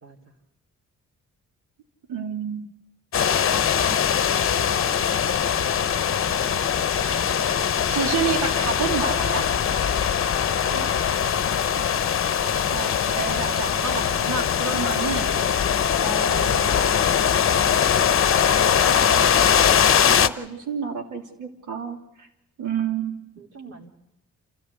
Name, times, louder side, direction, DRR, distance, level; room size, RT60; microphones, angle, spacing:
voice 1, 0.0-0.3 10.4-12.3 15.2-15.5 23.4-24.0, right 3 dB, 55° right, 2 dB, 3.5 m, -45 dB
voice 2, 2.1-2.7 7.9-9.4 12.7-15.3 16.0-16.9 18.8-19.2 20.1-22.3 22.6-23.2, right 6 dB, 80° right, 2 dB, 3.4 m, -29 dB
sound 1, 3.1-20.3, left 8 dB, 45° left, 0.8 m, -21 dB
27.5 x 14.0 x 8.4 m, 0.91 s
cardioid pair, 95°, 30 cm